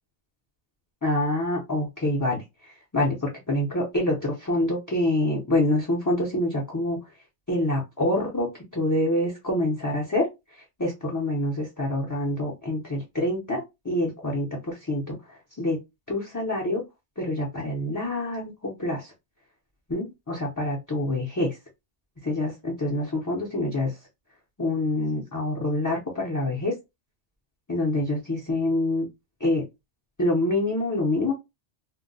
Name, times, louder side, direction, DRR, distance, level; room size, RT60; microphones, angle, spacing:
voice 1, 1.0-2.4 2.9-7.0 7.5-8.5 8.7-10.3 10.8-15.2 15.6-15.8 16.1-16.8 17.2-19.1 19.9-21.6 22.2-24.0 24.6-26.7 27.7-29.1 29.4-29.6 30.2-31.3, left 1 dB, 20° left, -1 dB, 0.6 m, -26 dB
2.2 x 2.1 x 3.8 m, 0.22 s
omnidirectional pair, 1.1 m